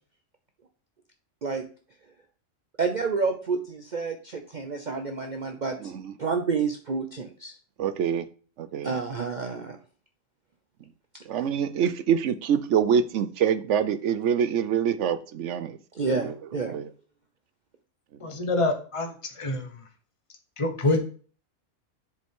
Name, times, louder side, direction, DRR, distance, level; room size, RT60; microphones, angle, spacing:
voice 1, 2.8-5.8 6.2-7.5 8.8-9.8 11.3-11.5 16.0-16.8, right 4 dB, 45° right, 0.7 m, -29 dB
voice 2, 5.8-6.1 7.8-8.2 8.6-8.9 11.3-15.8 16.1-16.3 16.6-16.9, right 8 dB, 70° right, 0.9 m, -25 dB
voice 3, 18.2-19.7 20.6-21.0, left 2 dB, 25° left, 1.2 m, -26 dB
7.1 x 5.1 x 3.6 m
omnidirectional pair, 1.4 m